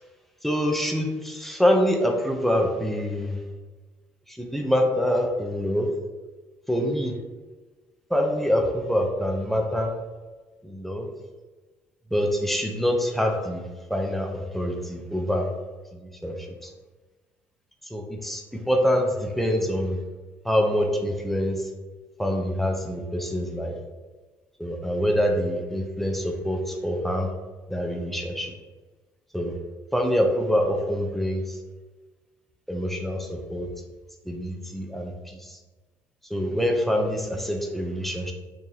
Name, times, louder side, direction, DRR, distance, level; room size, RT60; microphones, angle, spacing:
voice 1, 0.4-3.4 4.3-5.9 6.7-7.2 8.1-9.9 10.6-11.1 12.1-13.6 13.9-15.5 15.9-16.7 17.8-20.0 20.4-21.7 22.2-23.7 24.6-27.3 27.7-28.5 29.3-29.5 29.9-31.6 32.7-33.7 34.2-35.6 36.3-38.3, equal, ahead, 2 dB, 0.6 m, -25 dB
3.0 x 2.6 x 3.8 m, 1.3 s
supercardioid pair, 65°, 9 cm